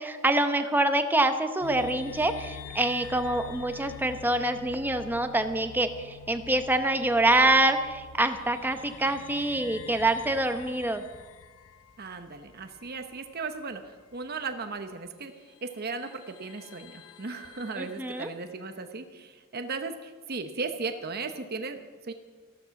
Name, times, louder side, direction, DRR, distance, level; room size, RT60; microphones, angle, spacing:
voice 1, 0.0-11.0 17.8-18.3, right 1 dB, 10° right, 7 dB, 0.9 m, -26 dB
sound 1, 1.6-13.6 13.8-13.9 15.0-15.1 15.6-18.6, left 7 dB, 75° left, 0.6 m, -47 dB
voice 2, 12.0-13.8 14.1-15.3 15.6-22.1, right 4 dB, 50° right, 7 dB, 0.9 m, -36 dB
15.0 x 13.0 x 5.9 m, 1.4 s
head